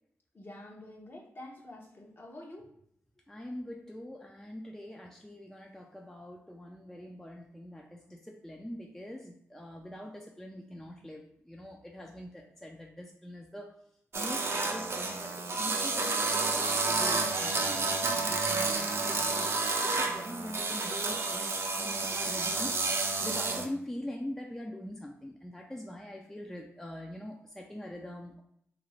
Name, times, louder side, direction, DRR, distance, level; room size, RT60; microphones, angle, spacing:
voice 1, 0.3-2.7, left 1 dB, 40° left, 0 dB, 0.8 m, -47 dB
voice 2, 3.3-13.8 14.1-19.5 19.8-22.8 23.2-28.4, left 1 dB, 5° left, 1 dB, 0.4 m, -43 dB
sound 1, 14.1-23.7, right 3 dB, 50° right, 0.5 m, -30 dB
2.7 x 2.5 x 3.1 m, 0.70 s
supercardioid pair, 45°, 6 cm